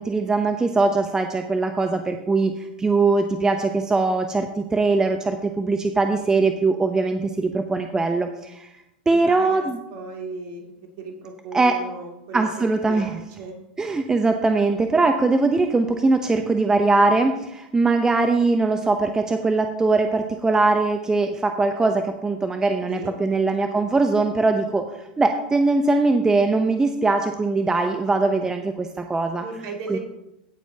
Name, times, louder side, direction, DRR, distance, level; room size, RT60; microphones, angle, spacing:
voice 1, 0.0-8.7 9.1-9.8 11.5-11.8 12.3-13.1 13.8-29.4 29.9-30.0, right 3 dB, 15° right, 6 dB, 0.7 m, -21 dB
voice 2, 9.1-9.7 9.9-12.5 12.9-13.6 22.9-23.1 29.4-30.0, right 3 dB, 50° right, 1 dB, 2.4 m, -35 dB
17.0 x 7.2 x 2.8 m, 0.90 s
figure-of-eight pair, 90°, 5 cm